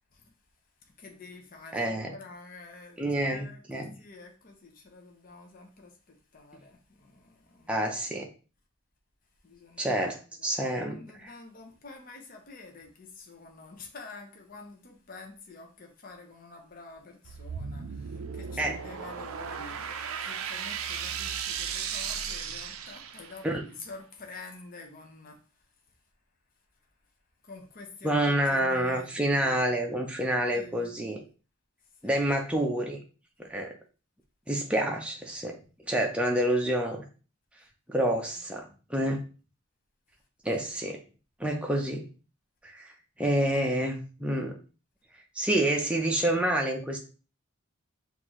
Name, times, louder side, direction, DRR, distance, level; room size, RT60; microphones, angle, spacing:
voice 1, 1.0-7.9 9.4-9.9 10.4-25.4 27.4-29.9 30.5-30.9 32.0-32.2 34.7-34.9 40.7-40.8, left 3 dB, 40° left, 2 dB, 0.7 m, -48 dB
voice 2, 1.7-2.1 3.0-4.0 7.7-8.3 9.8-11.0 18.6-18.8 23.4-23.6 28.0-31.2 32.0-33.0 33.4-33.7 34.5-35.6 35.9-37.1 37.9-39.3 40.4-41.0 41.4-42.1 42.6-42.9 43.2-44.6 45.3-47.0, right 1 dB, 5° right, 1 dB, 0.5 m, -28 dB
sound 1, 17.2-23.5, right 7 dB, 75° right, 0.4 m, -36 dB
5.8 x 2.6 x 3.0 m, 0.36 s
head